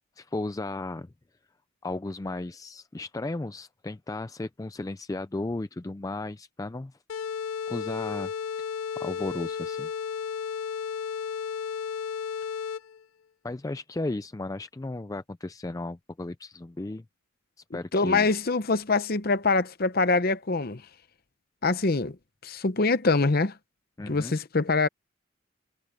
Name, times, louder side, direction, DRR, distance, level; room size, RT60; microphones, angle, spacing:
voice 1, 0.2-1.1 1.8-6.9 7.7-8.3 9.0-9.9 13.4-17.0 17.7-18.3 24.0-24.4, left 2 dB, 15° left, 0.3 m, -34 dB
sound 1, 7.1-13.0, left 7 dB, 75° left, 0.5 m, -33 dB
voice 2, 17.9-20.8 21.6-22.2 22.4-23.5 24.1-24.9, left 3 dB, 45° left, 0.8 m, -24 dB
head